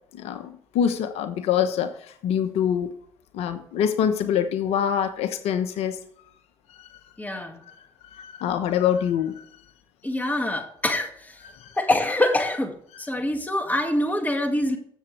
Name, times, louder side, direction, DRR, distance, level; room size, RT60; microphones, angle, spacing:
voice 1, 0.1-1.9 2.2-2.9 3.3-6.0 8.1-9.3 11.6-11.7, left 8 dB, 70° left, 10 dB, 1.0 m, -24 dB
voice 2, 7.2-7.6 10.0-11.4 11.8-14.8, left 1 dB, 15° left, 5 dB, 2.2 m, -25 dB
14.5 x 7.2 x 3.4 m, 0.64 s
hypercardioid pair, 60°, 11 cm